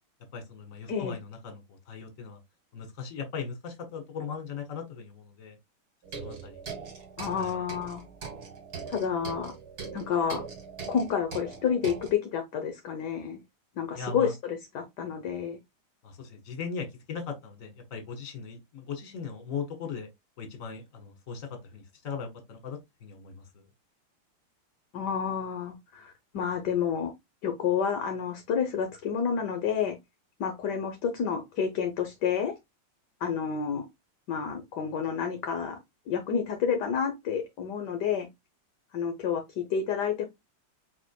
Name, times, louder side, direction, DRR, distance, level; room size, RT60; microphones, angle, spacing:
voice 1, 0.3-2.4 2.7-5.6 6.2-6.6 7.4-7.6 13.9-14.3 16.0-20.1 20.4-23.6, left 6 dB, 40° left, 1.5 m, -39 dB
sound 1, 6.0-12.1, right 5 dB, 45° right, 1.8 m, -41 dB
voice 2, 7.2-8.0 8.9-9.5 9.9-10.4 10.9-13.4 13.8-15.6 24.9-27.1 27.4-30.0 30.4-32.6 33.2-33.9 34.3-35.8 36.1-38.3 38.9-40.3, left 7 dB, 65° left, 1.2 m, -29 dB
4.8 x 4.3 x 2.3 m
omnidirectional pair, 2.4 m